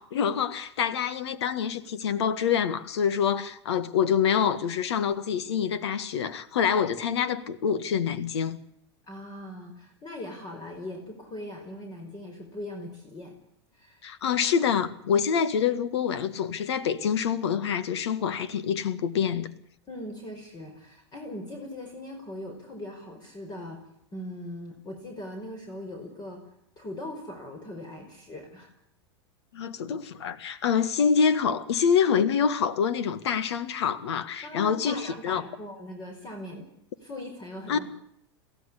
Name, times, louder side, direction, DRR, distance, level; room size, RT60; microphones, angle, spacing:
voice 1, 0.0-8.6 14.0-19.5 29.5-35.4 37.7-37.8, left 7 dB, 75° left, 1.7 m, -26 dB
voice 2, 9.0-13.4 13.7-14.0 19.9-23.8 24.1-26.4 26.8-28.7 34.4-36.7 37.0-37.8, left 1 dB, 30° left, 5.3 m, -40 dB
23.0 x 15.5 x 8.4 m
hypercardioid pair, 100°, 14 cm